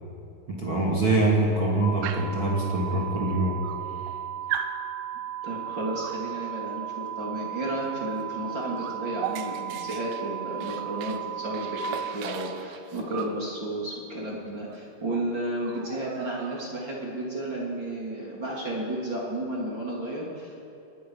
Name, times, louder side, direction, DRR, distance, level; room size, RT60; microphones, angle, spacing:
voice 1, 0.5-3.6, right 2 dB, 45° right, -3 dB, 1.7 m, -24 dB
sound 1, 1.8-11.8, right 10 dB, 70° left, 7.4 m, -36 dB
Dog, 2.0-2.4 3.3-3.4 3.6-4.2 4.5-4.8 6.0-6.3 8.1-8.3 8.5-11.2 11.5-13.4 14.7-14.8 15.1-15.3 15.6-16.8, right 9 dB, 75° right, 3.4 m, -37 dB
voice 2, 5.4-20.6, right 1 dB, 25° right, -4 dB, 3.0 m, -32 dB
24.5 x 20.0 x 5.8 m, 2.7 s
omnidirectional pair, 6.0 m